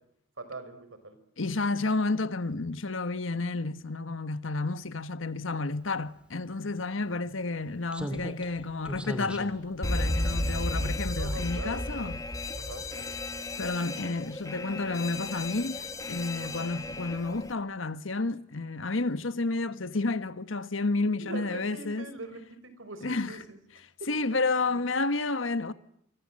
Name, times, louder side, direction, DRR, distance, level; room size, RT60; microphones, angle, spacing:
voice 1, 0.4-1.2 11.2-12.2 12.6-13.2 16.4-16.7 21.2-23.6 24.0-24.4 24.7-24.9, right 2 dB, 85° right, 5.5 m, -42 dB
voice 2, 1.4-12.2 13.6-22.1 23.0-23.4 24.1-25.7, left 3 dB, 85° left, 1.4 m, -31 dB
Slam, 6.5-6.6 7.9-11.4 11.7-11.9, equal, 5° right, 2.8 m, -40 dB
Alarm, 9.8-17.5, left 1 dB, 15° left, 1.5 m, -33 dB
28.0 x 25.0 x 7.7 m
head